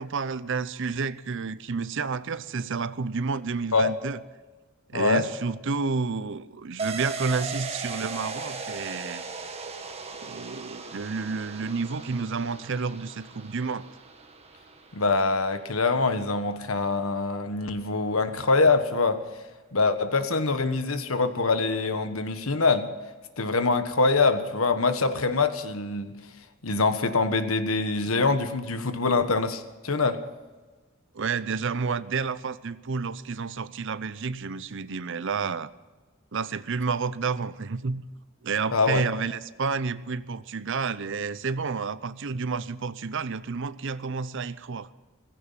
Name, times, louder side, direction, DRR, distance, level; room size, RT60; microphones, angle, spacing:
voice 1, 0.0-4.2 4.9-9.2 10.2-13.9 31.1-35.7 36.3-38.0 38.4-44.9, right 4 dB, 60° right, 15 dB, 0.7 m, -30 dB
voice 2, 4.9-5.2 14.9-19.2 19.7-22.9 23.4-26.1 26.6-30.2 38.7-39.0, left 3 dB, 90° left, 9 dB, 1.4 m, -24 dB
sound 1, 6.8-16.2 16.5-16.6, right 4 dB, 30° right, 1.6 m, -38 dB
16.0 x 16.0 x 5.8 m, 1.3 s
head